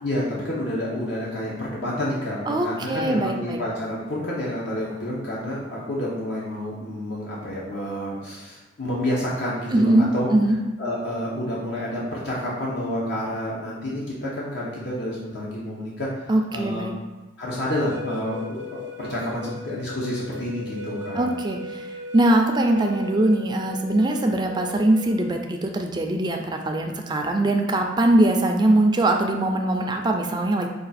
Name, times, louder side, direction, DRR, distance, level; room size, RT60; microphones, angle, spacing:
voice 1, 0.0-10.3 10.8-16.1 16.5-16.9 17.4-21.3, left 1 dB, 60° left, -6 dB, 0.9 m, -29 dB
voice 2, 2.5-3.6 9.7-10.6 16.3-16.9 21.2-30.7, right 1 dB, 25° right, 3 dB, 0.4 m, -21 dB
sound 1, 17.6-25.4, left 2 dB, 75° right, 0.6 m, -37 dB
4.9 x 2.4 x 4.1 m, 1.1 s
head